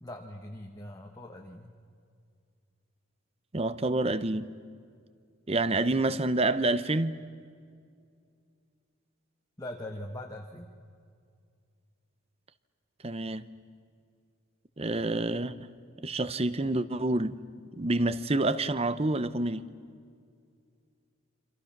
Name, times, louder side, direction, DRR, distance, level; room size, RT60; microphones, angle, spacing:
voice 1, 0.0-1.7 9.6-10.7, left 1 dB, 15° left, 1.2 m, -41 dB
voice 2, 3.5-4.5 5.5-7.1 13.0-13.5 14.8-15.7 16.0-17.4 17.8-19.6, right 2 dB, 25° right, 0.7 m, -28 dB
28.5 x 25.5 x 5.9 m
head